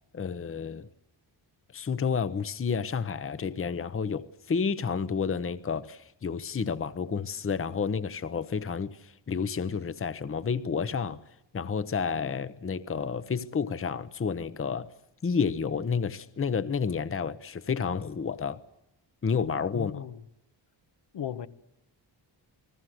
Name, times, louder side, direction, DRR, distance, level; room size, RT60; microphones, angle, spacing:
voice 1, 0.1-0.9 1.7-11.2 11.5-14.9 15.2-18.6 19.2-19.9, left 6 dB, 30° left, 0.9 m, -30 dB
voice 2, 19.7-20.2 21.1-21.5, left 9 dB, 75° left, 1.3 m, -36 dB
30.0 x 20.0 x 7.8 m
wide cardioid pair, 130°, 44 cm